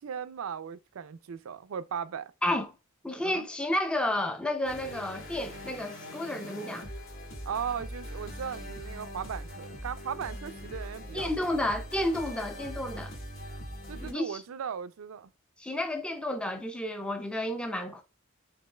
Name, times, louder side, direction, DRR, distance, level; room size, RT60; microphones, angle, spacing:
voice 1, 0.0-2.3 3.2-3.5 7.5-11.5 13.9-15.3, right 7 dB, 80° right, 0.4 m, -37 dB
voice 2, 3.0-6.9 11.1-13.2 14.0-14.4 15.6-18.0, left 1 dB, 5° left, 0.4 m, -31 dB
sound 1, 4.6-14.1, equal, 65° left, 1.6 m, -41 dB
5.2 x 3.8 x 2.2 m
head